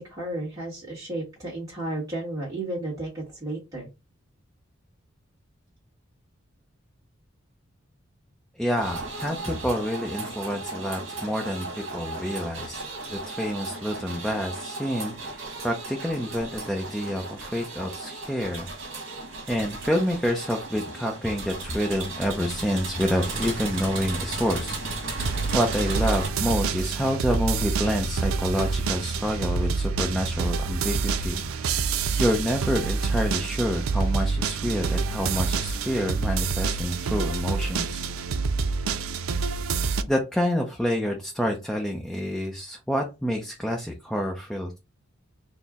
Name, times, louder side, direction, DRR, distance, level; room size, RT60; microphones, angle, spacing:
voice 1, 0.0-3.9, right 2 dB, 15° right, -7 dB, 1.3 m, -33 dB
voice 2, 8.6-18.7 19.5-38.0 40.1-44.8, equal, 5° left, 1 dB, 0.5 m, -28 dB
sound 1, 8.7-26.3, right 3 dB, 65° right, 1.2 m, -35 dB
sound 2, 25.2-40.0, right 4 dB, 90° right, 0.4 m, -27 dB
4.3 x 2.0 x 3.5 m, 0.26 s
head